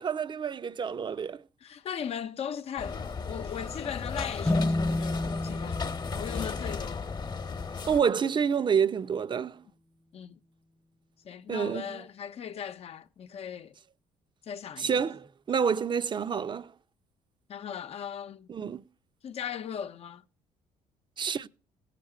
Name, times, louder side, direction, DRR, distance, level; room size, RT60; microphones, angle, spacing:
voice 1, 0.0-1.4 7.9-9.6 11.5-12.0 14.8-16.7 18.5-18.8 21.2-21.5, right 7 dB, 40° right, 0.7 m, -28 dB
voice 2, 1.6-7.2 10.1-10.4 11.2-13.8 14.4-15.0 17.5-18.5 19.2-20.2, left 8 dB, 55° left, 0.8 m, -38 dB
sound 1, 2.8-8.0, left 5 dB, 35° left, 1.1 m, -35 dB
sound 2, 4.4-8.0, left 1 dB, 5° left, 0.5 m, -32 dB
17.5 x 6.7 x 5.0 m
cardioid pair, 85°, 13 cm